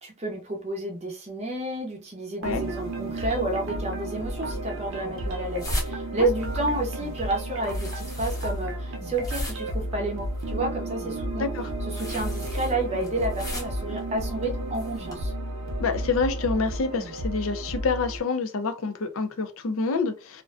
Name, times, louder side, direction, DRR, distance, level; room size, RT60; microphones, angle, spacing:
voice 1, 0.0-11.5 11.8-15.3, right 2 dB, 30° right, 0.5 m, -30 dB
sound 1, 2.4-18.2, right 1 dB, 70° right, 0.6 m, -32 dB
sound 2, 4.3-15.2, left 1 dB, 15° left, 0.7 m, -40 dB
voice 2, 11.4-11.7 15.8-20.4, left 4 dB, 75° left, 0.5 m, -27 dB
2.4 x 2.1 x 2.4 m
head